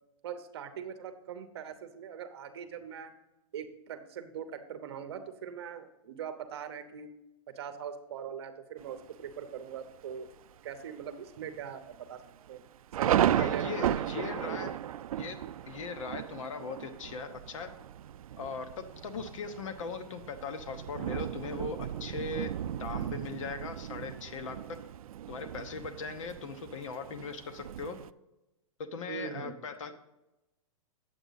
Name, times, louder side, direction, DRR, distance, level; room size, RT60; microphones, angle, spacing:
voice 1, 0.2-3.1 3.5-7.1 7.5-10.3 10.6-12.6 13.0-14.7 29.1-29.5, right 8 dB, 45° right, 9 dB, 0.8 m, -41 dB
Thunder, 8.8-9.3 9.9-10.0 10.3-10.7 11.0-11.1 11.8-28.1, right 11 dB, 85° right, 0.4 m, -35 dB
voice 2, 13.3-14.8 15.2-15.4 15.7-17.7 18.4-24.6 25.3-28.0 28.9-29.9, left 5 dB, 65° left, 8 dB, 1.0 m, -39 dB
9.1 x 7.9 x 4.0 m, 0.95 s
hypercardioid pair, 175°, 18 cm